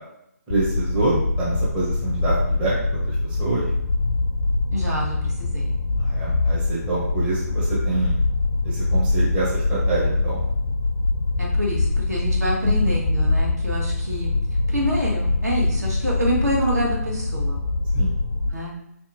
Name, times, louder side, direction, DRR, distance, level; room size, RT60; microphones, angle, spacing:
sound 1, 0.5-18.5, left 2 dB, 60° left, 0.4 m, -23 dB
voice 1, 0.5-3.7 6.0-8.2 8.6-10.4 12.6-12.9 17.9-18.1, right 2 dB, 15° right, -7 dB, 0.7 m, -26 dB
voice 2, 4.7-5.7 11.4-14.3 14.7-17.6 18.5-18.7, equal, 75° right, -3 dB, 1.3 m, -27 dB
3.6 x 2.8 x 2.6 m, 0.79 s
figure-of-eight pair, 145°, 9 cm